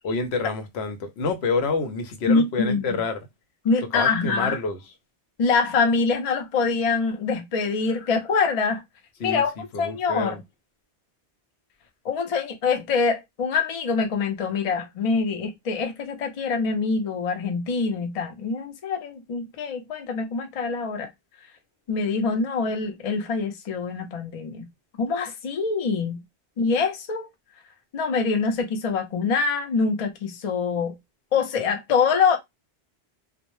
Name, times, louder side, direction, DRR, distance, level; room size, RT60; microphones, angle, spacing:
voice 1, 0.0-3.2 3.9-4.8 9.2-10.4, left 4 dB, 75° left, 0.8 m, -28 dB
voice 2, 2.3-3.0 3.6-4.6 5.4-8.8 9.2-10.4 12.0-21.1 21.9-24.7 25.0-26.2 26.6-27.3 27.9-31.0 31.3-32.4, left 4 dB, 50° left, 0.5 m, -24 dB
2.0 x 2.0 x 2.9 m
omnidirectional pair, 1.1 m